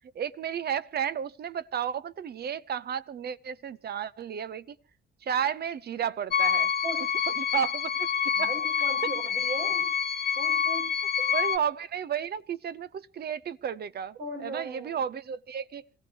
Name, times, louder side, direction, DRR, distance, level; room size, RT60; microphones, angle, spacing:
voice 1, 0.1-4.8 5.2-6.7 7.4-8.1 8.4-8.5 11.2-15.8, right 8 dB, 55° right, 0.9 m, -32 dB
sound 1, 6.3-11.6, left 7 dB, 55° left, 1.0 m, -27 dB
voice 2, 8.3-9.8 10.3-10.9 14.2-15.0, right 2 dB, 75° right, 6.2 m, -38 dB
26.0 x 16.0 x 3.0 m
cardioid pair, 90°, 20 cm